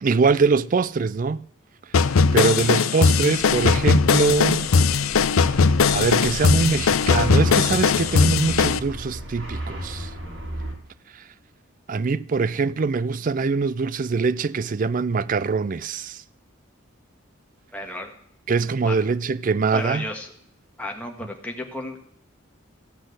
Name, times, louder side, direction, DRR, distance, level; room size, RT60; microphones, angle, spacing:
voice 1, 0.0-1.4 2.3-4.7 5.9-10.1 11.9-16.2 18.5-20.0, right 4 dB, 40° right, 0.4 m, -23 dB
sound 1, 1.9-8.8, left 5 dB, 85° left, 0.5 m, -19 dB
sound 2, 3.4-10.7, equal, 65° right, 3.6 m, -34 dB
voice 2, 17.7-18.1 18.6-19.0 19.7-20.3 20.8-22.0, left 1 dB, 5° left, 1.6 m, -33 dB
14.5 x 6.3 x 7.9 m
head